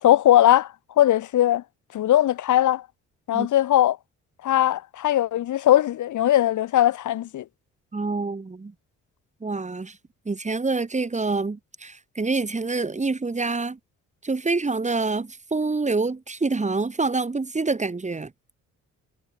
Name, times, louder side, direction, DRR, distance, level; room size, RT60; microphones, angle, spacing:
voice 1, 0.0-0.7 1.0-1.6 1.9-2.8 3.3-4.0 4.4-7.4, left 12 dB, 75° left, 3.7 m, -19 dB
voice 2, 7.9-8.7 9.4-10.0 10.3-13.8 14.2-18.3, right 3 dB, 25° right, 5.5 m, -26 dB
cardioid pair, 90°, 30 cm